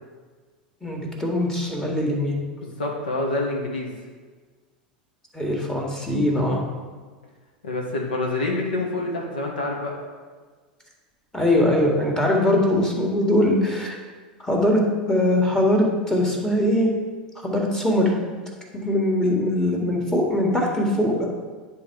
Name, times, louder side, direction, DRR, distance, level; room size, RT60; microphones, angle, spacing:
voice 1, 0.8-2.4 5.3-6.6 11.3-14.0 14.4-14.8 15.1-16.9 17.4-18.1 18.7-21.3, left 1 dB, 10° left, -1 dB, 1.6 m, -21 dB
voice 2, 2.6-3.9 7.6-10.0, left 2 dB, 80° left, 0 dB, 1.4 m, -27 dB
9.9 x 3.5 x 4.6 m, 1.5 s
hypercardioid pair, 90°, 5 cm